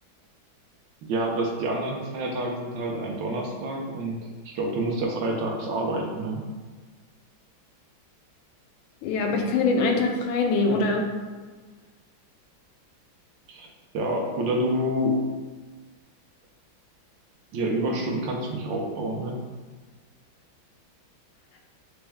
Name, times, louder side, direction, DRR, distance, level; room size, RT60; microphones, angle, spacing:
voice 1, 1.0-4.2 4.4-6.4 13.5-13.7 13.9-15.2 17.5-19.3, right 1 dB, 75° right, 0 dB, 1.2 m, -28 dB
voice 2, 9.0-11.1, left 3 dB, 85° left, 2 dB, 1.4 m, -23 dB
4.5 x 2.1 x 3.3 m, 1.4 s
omnidirectional pair, 2.2 m